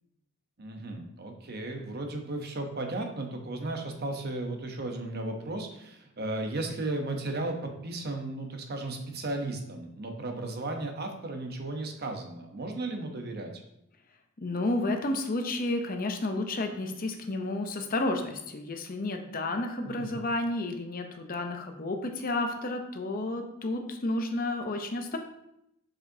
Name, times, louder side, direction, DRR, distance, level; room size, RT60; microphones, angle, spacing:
voice 1, 0.6-13.6 19.8-20.2, right 2 dB, 45° right, 4 dB, 0.8 m, -35 dB
voice 2, 14.4-25.2, left 2 dB, 40° left, 5 dB, 0.6 m, -31 dB
7.3 x 5.0 x 2.7 m, 0.81 s
head